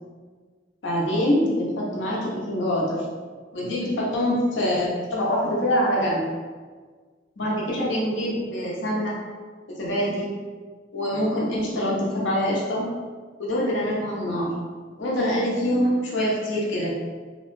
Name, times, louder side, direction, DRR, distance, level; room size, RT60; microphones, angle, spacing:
voice 1, 0.8-3.0 3.5-6.3 7.4-9.2 9.7-10.3 10.9-12.8 13.4-14.5 15.0-16.9, equal, 70° left, -5 dB, 0.7 m, -24 dB
2.9 x 2.1 x 3.0 m, 1.5 s
head